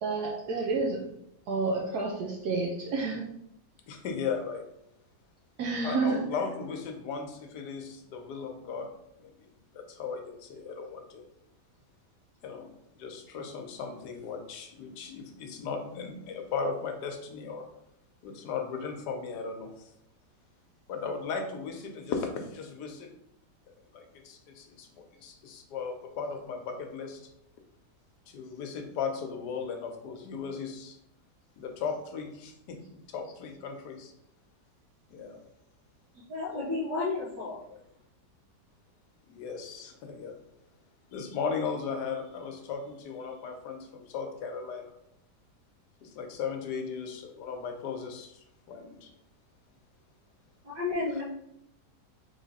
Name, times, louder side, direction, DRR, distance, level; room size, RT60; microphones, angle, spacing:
voice 1, 0.0-1.0 1.5-3.3 5.6-6.3, right 3 dB, 70° right, -1 dB, 1.1 m, -29 dB
voice 2, 3.9-4.7 5.8-8.9 9.2-9.5 9.7-11.2 12.4-17.7 18.2-19.7 20.9-23.1 23.9-27.2 28.3-31.0 31.6-34.1 35.1-35.4 39.2-40.4 41.1-44.9 46.0-48.4 48.7-49.1, left 5 dB, 75° left, 4 dB, 1.3 m, -36 dB
voice 3, 36.3-37.6 50.6-51.2, left 3 dB, 90° right, -8 dB, 1.8 m, -32 dB
3.6 x 3.2 x 4.0 m, 0.76 s
omnidirectional pair, 1.8 m